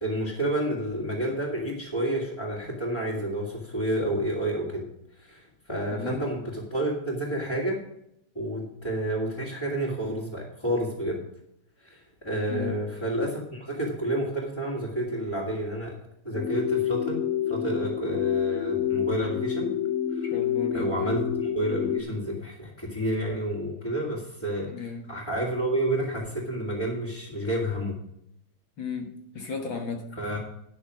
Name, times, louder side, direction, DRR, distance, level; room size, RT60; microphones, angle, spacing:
voice 1, 0.0-4.9 5.2-7.8 8.3-11.2 11.8-15.9 16.2-19.7 20.1-20.3 20.7-28.0 30.2-30.4, right 1 dB, 10° left, -7 dB, 2.0 m, -30 dB
voice 2, 5.9-6.2 12.5-12.8 20.3-21.1 24.7-25.1 28.8-30.2, left 5 dB, 50° left, 3 dB, 1.8 m, -35 dB
sound 1, 16.3-22.0, left 9 dB, 75° left, 1.9 m, -28 dB
12.0 x 6.3 x 6.2 m, 0.77 s
omnidirectional pair, 3.4 m